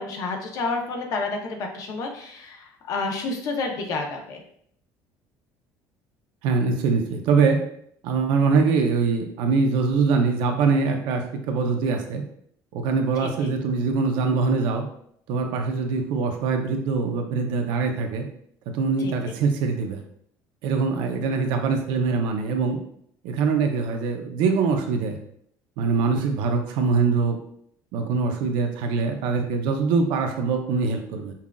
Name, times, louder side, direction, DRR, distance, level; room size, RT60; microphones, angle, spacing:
voice 1, 0.0-4.4 13.2-13.5 19.0-19.4, left 3 dB, 45° left, 2 dB, 0.7 m, -30 dB
voice 2, 6.4-7.6 8.0-12.2 12.7-14.8 15.3-18.3 18.7-20.0 20.6-22.8 23.2-25.2 25.8-27.4 27.9-31.3, right 4 dB, 75° right, 4 dB, 0.6 m, -23 dB
5.5 x 2.4 x 2.3 m, 0.66 s
cardioid pair, 155°, 8 cm